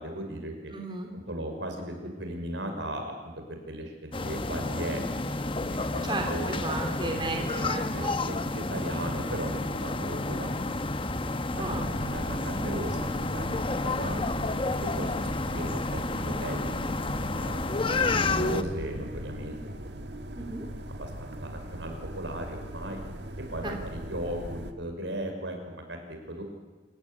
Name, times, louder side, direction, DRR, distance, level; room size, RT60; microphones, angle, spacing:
voice 1, 0.0-0.7 1.1-6.5 6.9-7.1 7.4-10.6 11.1-11.2 11.6-11.7 12.0-14.2 15.0-16.6 16.8-17.6 17.9-19.9 21.0-23.0 23.4-26.4, right 1 dB, 80° right, 4 dB, 5.4 m, -37 dB
voice 2, 0.7-1.1 6.0-8.4 11.6-11.9 20.3-20.7 23.6-23.7, right 2 dB, 25° right, 2 dB, 3.3 m, -34 dB
sound 1, 4.1-18.6, left 2 dB, 30° left, 0.9 m, -30 dB
sound 2, 11.5-24.7, right 1 dB, 65° right, 1.7 m, -40 dB
26.5 x 15.5 x 9.8 m, 1.3 s
head